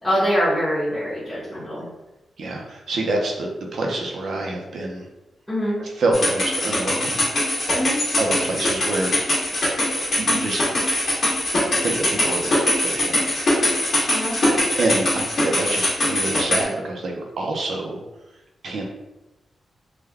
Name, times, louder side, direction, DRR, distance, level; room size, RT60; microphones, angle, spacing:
voice 1, 0.0-1.8 5.5-5.8 7.7-8.0 14.1-14.4, equal, 10° left, -10 dB, 1.1 m, -23 dB
voice 2, 2.4-5.1 5.8-7.2 8.2-9.2 10.2-10.6 11.7-13.3 13.9-14.3 14.7-18.0 18.6-18.8, right 2 dB, 65° right, 0 dB, 0.6 m, -26 dB
sound 1, 6.1-16.6, left 1 dB, 50° left, 1.5 m, -22 dB
3.4 x 2.2 x 3.4 m, 1.0 s
wide cardioid pair, 130°, 0 cm